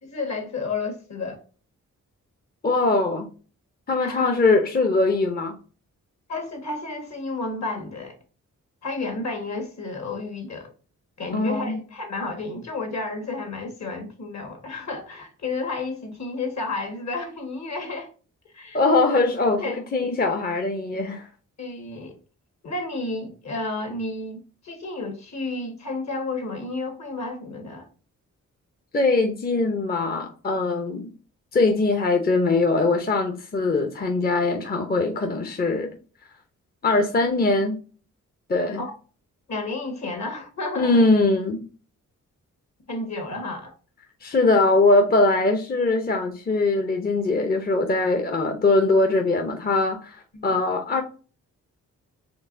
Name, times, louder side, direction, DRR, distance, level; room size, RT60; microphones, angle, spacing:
voice 1, 0.0-1.4 4.0-4.4 6.3-8.2 8.8-10.7 11.2-18.1 18.5-18.8 19.6-19.8 21.6-22.2 22.6-27.9 38.8-38.9 39.5-41.1 42.9-43.7 50.3-50.6, left 3 dB, 55° left, 1.5 m, -31 dB
voice 2, 2.6-3.3 3.9-5.6 11.3-11.8 18.7-21.3 28.9-31.1 31.5-35.9 36.8-37.8 38.5-38.8 40.8-41.6 44.2-51.0, left 3 dB, 30° left, 0.7 m, -21 dB
4.5 x 2.9 x 2.6 m
cardioid pair, 55°, 33 cm